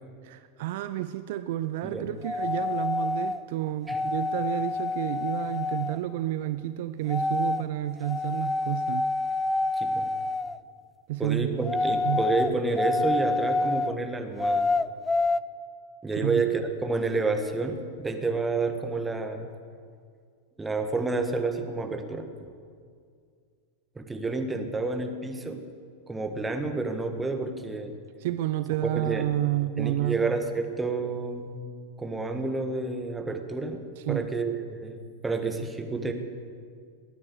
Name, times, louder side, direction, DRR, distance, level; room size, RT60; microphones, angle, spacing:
voice 1, 0.2-9.1 11.1-11.7 12.0-12.2 16.1-16.4 28.2-30.2 34.0-34.3, right 14 dB, 50° right, 12 dB, 0.4 m, -30 dB
sound 1, 2.2-3.4 3.9-6.0 7.1-7.6 8.0-10.6 11.6-13.9 14.4-15.4, left 3 dB, 10° left, 0.4 m, -27 dB
voice 2, 9.8-10.1 11.2-14.7 16.0-19.5 20.6-22.3 23.9-25.6 26.1-27.9 28.8-29.3 29.8-31.6 32.0-33.8 34.1-36.1, right 3 dB, 10° right, 5 dB, 1.5 m, -29 dB
20.5 x 9.7 x 6.8 m, 2.1 s
figure-of-eight pair, 90°, 0 cm